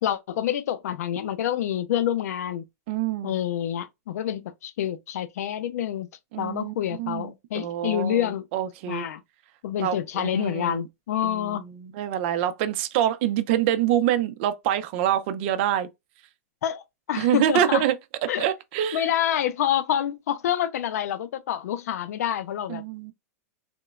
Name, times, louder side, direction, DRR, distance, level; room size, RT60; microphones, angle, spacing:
voice 1, 0.0-2.6 3.2-6.1 6.4-8.5 8.9-9.2 9.6-11.6 16.6-17.8 18.3-18.5 18.9-22.8, left 10 dB, 80° left, 0.4 m, -27 dB
voice 2, 2.9-3.4 6.3-9.1 9.8-10.8 11.2-15.9 17.2-17.9 18.4-19.0 22.7-23.1, right 11 dB, 45° right, 0.4 m, -26 dB
2.9 x 2.1 x 2.3 m
supercardioid pair, 155°, 8 cm